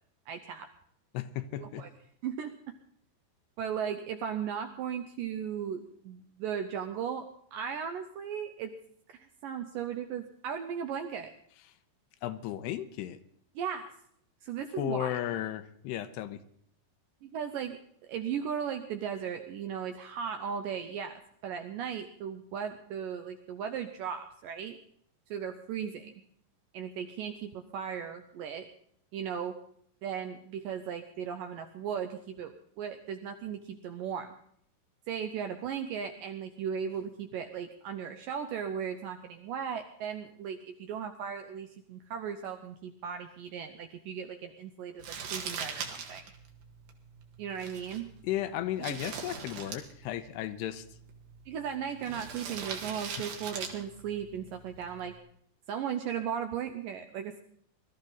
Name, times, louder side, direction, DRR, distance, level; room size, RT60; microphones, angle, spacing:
voice 1, 0.3-0.7 1.6-1.9 2.2-2.7 3.6-8.7 9.1-11.3 13.6-13.9 14.4-15.1 17.2-24.8 25.3-26.1 26.7-28.7 29.1-29.6 30.0-34.3 35.1-46.2 47.4-48.1 48.9-49.0 51.5-55.1 55.7-57.4, right 8 dB, 80° right, 7 dB, 2.0 m, -37 dB
voice 2, 1.1-1.9 12.2-13.2 14.8-16.4 48.2-50.9, left 12 dB, 85° left, 11 dB, 2.9 m, -34 dB
Crumpling crinkling, 45.0-55.2, right 6 dB, 65° right, 3.4 m, -42 dB
21.0 x 13.0 x 4.0 m, 0.65 s
omnidirectional pair, 4.8 m